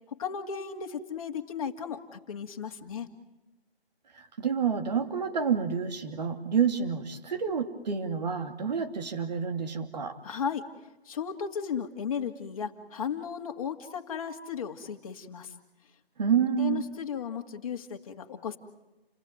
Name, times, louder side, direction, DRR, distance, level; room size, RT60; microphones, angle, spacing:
voice 1, 0.1-3.1 10.2-10.6 11.0-15.5 16.6-18.6, left 7 dB, 35° left, 3 dB, 2.5 m, -35 dB
voice 2, 4.1-10.2 16.2-16.8, right 7 dB, 40° right, 7 dB, 2.6 m, -28 dB
30.0 x 19.0 x 9.3 m, 1.0 s
figure-of-eight pair, 160°, 32 cm